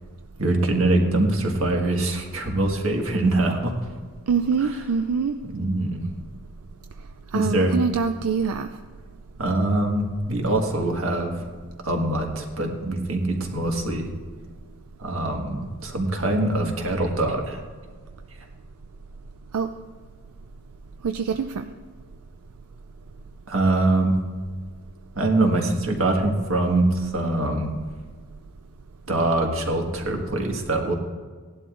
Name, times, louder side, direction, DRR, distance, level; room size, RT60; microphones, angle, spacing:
voice 1, 0.4-3.7 4.6-4.7 5.5-6.0 7.3-7.7 9.4-11.5 11.8-14.1 15.0-17.6 23.5-24.2 25.1-27.7 29.1-30.9, right 2 dB, 65° right, 2 dB, 1.7 m, -23 dB
voice 2, 4.3-5.3 7.3-8.7 19.5-19.7 21.0-21.7, right 5 dB, 85° right, 8 dB, 0.5 m, -24 dB
17.5 x 11.5 x 2.5 m, 1.6 s
head